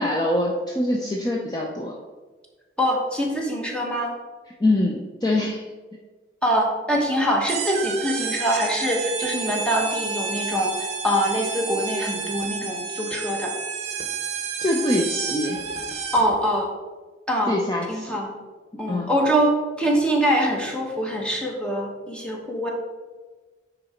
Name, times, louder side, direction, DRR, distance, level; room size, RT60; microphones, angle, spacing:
voice 1, 0.0-2.0 4.6-5.6 14.6-15.6 17.5-18.2 18.9-19.1, left 1 dB, 25° left, -1 dB, 0.6 m, -24 dB
voice 2, 2.8-4.1 6.4-13.5 16.1-16.7 17.3-17.5 17.9-18.3 18.8-22.7, equal, 5° left, 0 dB, 1.1 m, -24 dB
sound 1, 7.5-16.4, right 6 dB, 40° right, 0.9 m, -30 dB
9.4 x 4.0 x 4.4 m, 1.3 s
head